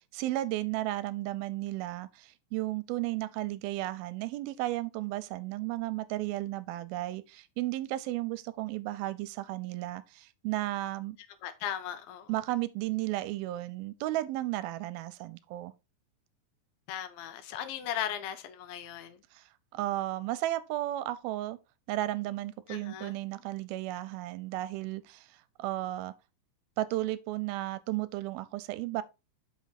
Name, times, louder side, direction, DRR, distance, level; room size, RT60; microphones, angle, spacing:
voice 1, 0.1-11.2 12.3-15.7 19.3-21.6 21.9-26.1 26.8-29.0, right 16 dB, 80° right, 2.3 m, -34 dB
voice 2, 11.4-12.3 16.9-19.2 22.7-23.1, left 10 dB, 80° left, 2.5 m, -37 dB
6.1 x 5.7 x 4.0 m
omnidirectional pair, 4.4 m